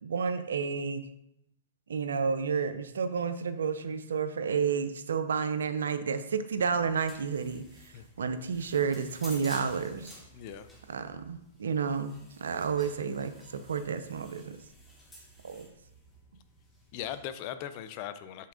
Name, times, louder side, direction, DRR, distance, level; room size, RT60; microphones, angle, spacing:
voice 1, 0.0-1.0 1.9-7.6 8.2-10.1 10.9-13.3 13.7-14.6 15.4-15.7, right 6 dB, 80° right, 10 dB, 0.5 m, -31 dB
sound 1, 6.6-17.3, equal, 10° left, 1.3 m, -53 dB
voice 2, 10.3-10.7 16.9-18.5, left 10 dB, 45° left, 12 dB, 0.4 m, -39 dB
5.7 x 3.4 x 5.0 m, 0.79 s
hypercardioid pair, 120°, 0 cm